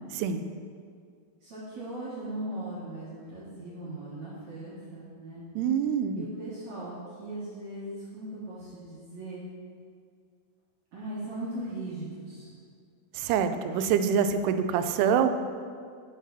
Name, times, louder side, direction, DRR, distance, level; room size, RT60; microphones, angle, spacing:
voice 1, 1.4-5.4 6.1-9.4 10.9-12.5, right 1 dB, 60° right, -8 dB, 2.2 m, -39 dB
voice 2, 5.6-6.2 13.2-15.3, right 7 dB, 85° right, 8 dB, 2.6 m, -25 dB
11.5 x 5.5 x 4.0 m, 2.2 s
omnidirectional pair, 4.5 m